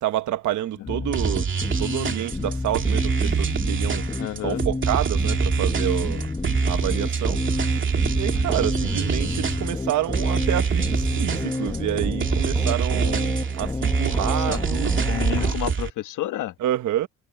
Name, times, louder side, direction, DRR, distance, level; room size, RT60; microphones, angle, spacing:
voice 1, 0.0-1.5 1.8-4.1 4.4-6.3 6.6-7.9 8.1-15.1 16.6-17.1, right 12 dB, 75° right, 1.3 m, -28 dB
sound 1, 0.9-15.5, left 2 dB, 15° left, 1.3 m, -30 dB
sound 2, 1.1-15.9, right 6 dB, 40° right, 2.6 m, -25 dB
voice 2, 4.2-4.6 8.3-8.4 14.5-14.6 15.0-16.5, left 14 dB, 85° left, 1.5 m, -30 dB
cardioid pair, 90°, 30 cm